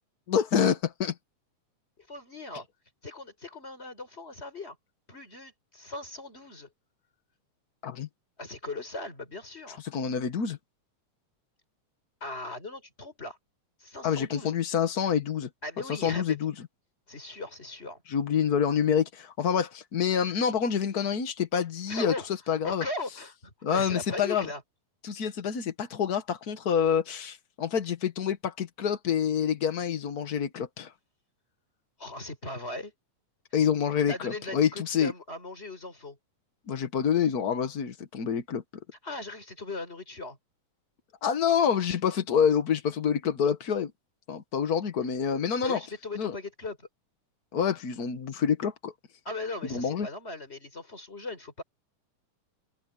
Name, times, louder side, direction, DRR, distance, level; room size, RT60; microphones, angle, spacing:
voice 1, 0.3-1.1 7.8-8.1 9.9-10.6 14.0-15.5 15.9-16.5 18.1-22.1 22.5-22.8 23.6-24.5 25.0-30.9 33.5-35.1 36.7-38.6 41.2-43.9 44.3-45.8 46.2-46.3 47.5-48.9 49.7-50.1, left 7 dB, 75° left, 0.8 m, -27 dB
voice 2, 2.0-2.7 3.0-4.8 5.1-6.7 8.4-9.8 12.2-13.4 13.8-14.5 15.6-16.4 17.1-18.0 21.9-22.3 22.6-24.6 32.0-32.9 34.1-36.2 39.0-40.4 45.6-46.9 49.2-51.6, left 2 dB, 20° left, 4.7 m, -38 dB
omnidirectional pair, 3.6 m